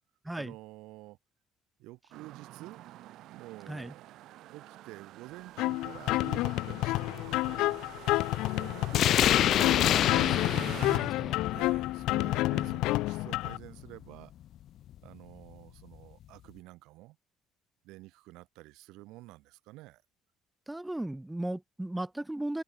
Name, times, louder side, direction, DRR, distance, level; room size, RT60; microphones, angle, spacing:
voice 1, 0.4-1.2 1.8-2.8 3.3-4.2 4.5-7.9 8.6-9.9 10.4-10.5 11.5-14.3 15.0-17.2 17.8-20.0, right 20 dB, 85° right, 4.2 m, -49 dB
sound 1, 2.1-11.0, right 15 dB, 65° right, 1.5 m, -46 dB
sound 2, 5.6-13.6, left 19 dB, 80° left, 0.7 m, -30 dB
sound 3, 8.9-14.0, left 12 dB, 50° left, 1.1 m, -28 dB
voice 2, 10.1-11.4 12.5-12.8 20.7-22.6, right 1 dB, 5° right, 0.6 m, -37 dB
open air
cardioid pair, 155°, 0 cm